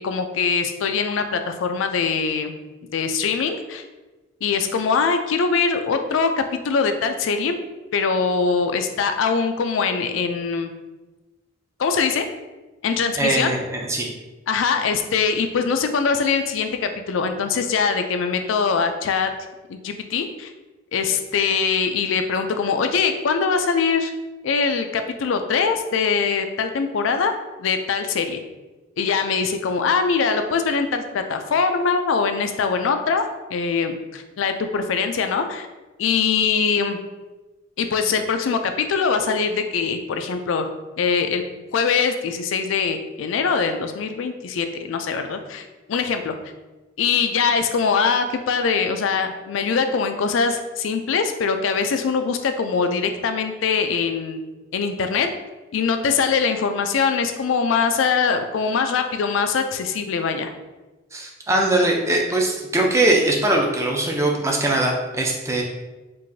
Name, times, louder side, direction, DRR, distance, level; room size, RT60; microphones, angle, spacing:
voice 1, 0.0-2.5 2.9-3.8 4.4-7.5 7.9-10.7 11.8-12.3 12.8-13.5 14.5-19.3 19.7-20.5 20.9-24.1 24.4-27.3 27.6-28.4 29.0-35.7 36.0-37.0 37.8-40.7 41.0-41.4 41.7-46.3 47.0-54.4 54.7-55.3 55.7-60.5, left 5 dB, 75° left, 7 dB, 0.4 m, -22 dB
voice 2, 13.2-14.1 61.1-65.6, right 2 dB, 15° right, 0 dB, 0.5 m, -21 dB
4.6 x 2.5 x 2.6 m, 1.1 s
head